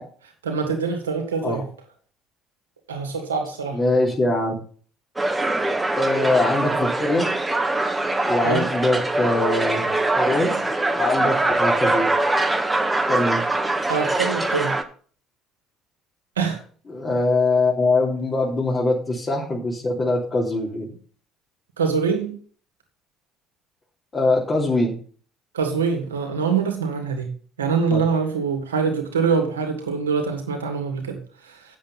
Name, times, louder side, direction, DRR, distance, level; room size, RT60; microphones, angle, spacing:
voice 1, 0.4-1.6 2.9-3.8 8.4-8.7 13.9-14.7 16.4-16.6 21.8-22.3 25.5-27.3 27.6-31.2 31.5-31.6, right 5 dB, 85° right, 4 dB, 2.4 m, -24 dB
voice 2, 3.7-4.5 6.0-7.4 8.2-9.9 10.2-10.6 10.9-12.1 13.1-13.4 16.9-20.9 24.1-24.9 27.9-28.0, left 2 dB, 35° left, -5 dB, 3.2 m, -22 dB
sound 1, 5.2-14.8, right 2 dB, 15° right, 1.7 m, -23 dB
8.8 x 7.5 x 5.7 m, 0.42 s
hypercardioid pair, 55°, 0 cm